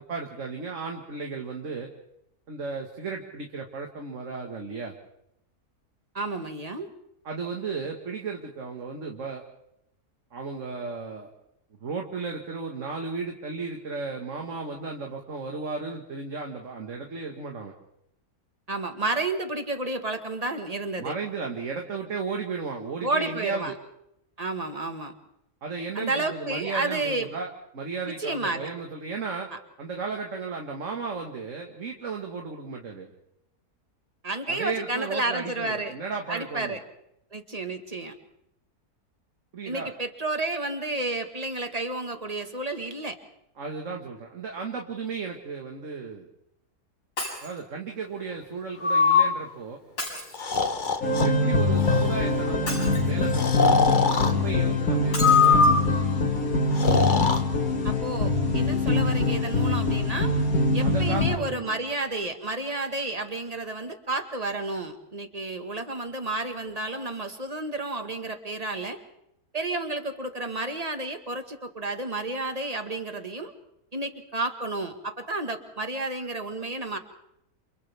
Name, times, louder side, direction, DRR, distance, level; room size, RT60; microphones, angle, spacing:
voice 1, 0.0-1.9 2.5-4.9 7.3-9.4 10.3-11.3 11.8-17.7 21.0-23.8 25.6-29.5 29.8-33.1 34.5-36.8 39.5-39.9 43.6-46.3 47.4-49.8 51.2-55.9 60.8-61.8, right 4 dB, 55° right, 1 dB, 2.1 m, -34 dB
voice 2, 6.1-6.9 18.7-21.1 23.0-23.7 24.4-25.1 25.9-27.3 28.0-28.7 34.2-35.9 36.3-36.8 37.3-38.2 39.6-43.2 57.8-60.3 60.7-69.0 69.5-73.5 73.9-77.0, right 2 dB, 25° right, 6 dB, 1.7 m, -31 dB
Shatter, 47.2-47.6 50.0-50.9 52.7-53.4 55.1-55.7 56.4-56.5 56.7-56.8, left 1 dB, 80° left, 8.2 m, -35 dB
Breathing, 48.8-49.3 50.3-51.3 51.8-52.2 53.3-54.3 55.2-56.0 56.7-57.4, left 5 dB, 35° left, 1.2 m, -21 dB
sound 1, 51.0-61.4, left 2 dB, 65° left, 2.3 m, -24 dB
29.0 x 28.0 x 3.5 m, 0.80 s
omnidirectional pair, 1.6 m